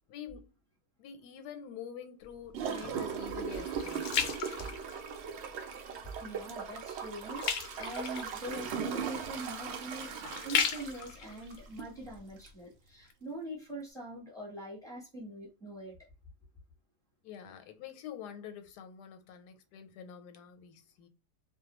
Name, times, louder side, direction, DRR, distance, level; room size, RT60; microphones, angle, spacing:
voice 1, 0.1-0.5 1.0-4.1 17.2-21.1, left 8 dB, 90° left, 1.2 m, -46 dB
sound 1, 2.2-5.5 6.0-6.3 6.6-12.5 13.1-13.2, left 6 dB, 70° left, 0.8 m, -36 dB
Gurgling / Toilet flush, 2.5-11.9 12.4-12.5, right 7 dB, 75° right, 0.6 m, -39 dB
voice 2, 6.0-10.1 10.4-16.0, right 1 dB, 5° left, 0.9 m, -43 dB
2.5 x 2.2 x 2.9 m
omnidirectional pair, 1.7 m